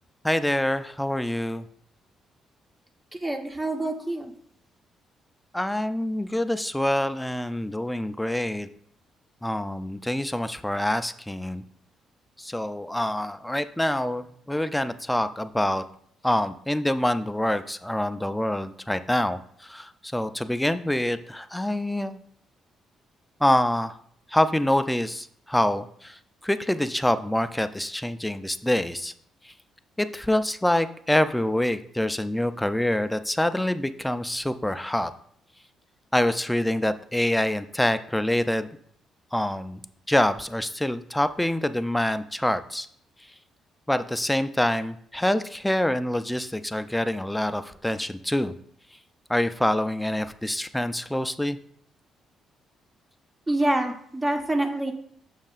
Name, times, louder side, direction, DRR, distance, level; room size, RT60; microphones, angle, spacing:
voice 1, 0.2-1.7 5.5-8.7 9.4-11.6 12.4-15.8 16.2-22.2 23.4-24.0 24.3-29.1 29.4-29.5 30.0-35.1 36.1-38.7 39.3-39.8 40.1-42.9 43.9-48.5 49.3-51.6, left 1 dB, 5° left, 11 dB, 0.4 m, -26 dB
voice 2, 3.2-4.3 53.5-54.9, right 1 dB, 20° right, 4 dB, 1.0 m, -26 dB
7.3 x 6.4 x 2.4 m, 0.64 s
cardioid pair, 90°, 0 cm